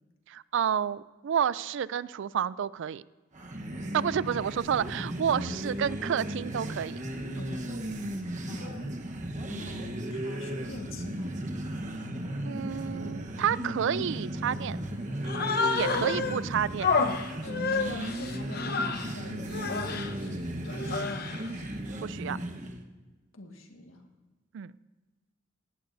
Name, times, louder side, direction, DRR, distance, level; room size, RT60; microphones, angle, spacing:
voice 1, 0.3-3.0 3.9-7.0 12.4-14.8 15.7-16.9 22.0-22.4 24.5-24.7, right 8 dB, 65° right, 19 dB, 0.4 m, -30 dB
sound 1, 3.3-22.8, right 1 dB, 40° right, 1.1 m, -36 dB
voice 2, 7.4-7.7 8.5-9.0 9.5-11.4 15.9-16.1 17.4-21.4 23.3-24.1, left 2 dB, 90° left, 3 dB, 1.7 m, -46 dB
Human voice, 15.2-16.4 16.8-19.1 19.5-20.1 20.7-21.5, left 4 dB, 50° left, 0.8 m, -29 dB
17.5 x 17.5 x 2.7 m, 1.3 s
head